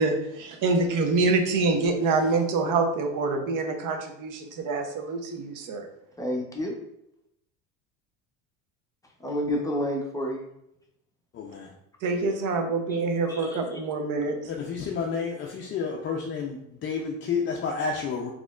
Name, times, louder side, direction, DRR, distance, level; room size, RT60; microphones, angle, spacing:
voice 1, 0.0-5.9 12.0-14.4, right 3 dB, 55° right, 5 dB, 0.7 m, -26 dB
voice 2, 6.2-6.7 9.2-10.4 13.3-13.6, equal, 10° left, -1 dB, 0.8 m, -29 dB
voice 3, 11.3-11.7 14.4-18.3, left 5 dB, 30° left, 0 dB, 0.4 m, -30 dB
4.0 x 2.9 x 2.4 m, 0.79 s
supercardioid pair, 105°, 39 cm